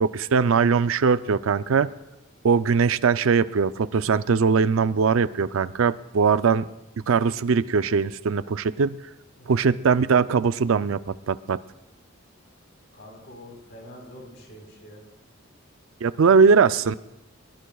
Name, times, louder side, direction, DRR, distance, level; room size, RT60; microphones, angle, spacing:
voice 1, 0.0-1.9 2.4-6.7 7.1-9.0 9.5-11.6 16.0-16.9, right 5 dB, 75° right, 14 dB, 0.5 m, -21 dB
voice 2, 9.4-9.7 12.9-15.0, left 1 dB, 60° left, 1 dB, 4.2 m, -45 dB
22.0 x 20.5 x 2.3 m, 0.96 s
head